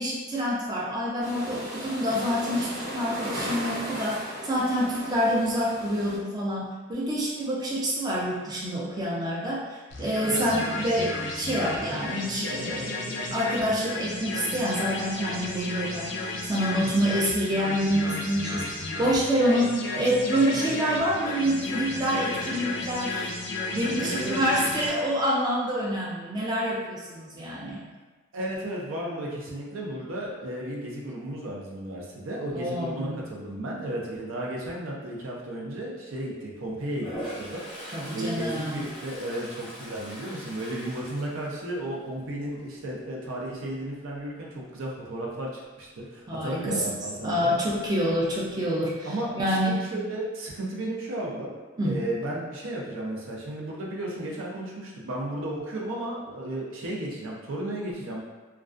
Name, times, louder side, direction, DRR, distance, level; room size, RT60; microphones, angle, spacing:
voice 1, 0.0-18.7 19.0-23.3 23.7-27.8 32.5-33.2 37.9-38.8 46.3-46.8 47.2-49.8 51.8-52.0, equal, 20° right, -5 dB, 0.4 m, -27 dB
sound 1, 1.2-6.2, equal, 55° right, 0.8 m, -36 dB
sound 2, 9.9-24.9, left 2 dB, 60° left, 0.4 m, -33 dB
voice 2, 24.0-24.4 28.3-37.1 37.4-37.6 38.1-45.5 45.8-47.5 49.0-51.5 51.8-58.2, right 1 dB, 80° right, -3 dB, 0.5 m, -34 dB
Toilet flush, 36.9-42.1 42.5-42.9 47.4-47.5 47.7-48.5, equal, 5° right, 0.8 m, -41 dB
2.3 x 2.2 x 2.4 m, 1.3 s
head